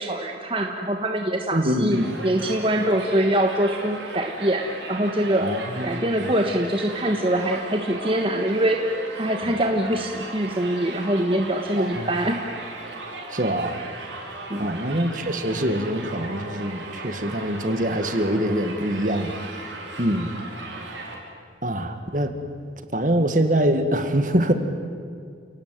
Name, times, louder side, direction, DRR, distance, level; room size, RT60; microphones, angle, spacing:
voice 1, 0.0-5.5 5.8-8.8 9.2-12.4 14.5-14.7, right 1 dB, 30° right, 3 dB, 1.4 m, -24 dB
voice 2, 1.5-2.1 5.4-6.3 11.8-12.1 13.3-13.8 14.6-19.3 20.0-20.3 21.6-22.3 22.9-24.5, right 1 dB, 45° right, 8 dB, 1.9 m, -24 dB
Crowd, 1.9-21.1, right 2 dB, 85° right, 5.3 m, -37 dB
29.5 x 18.0 x 9.4 m, 2.3 s
head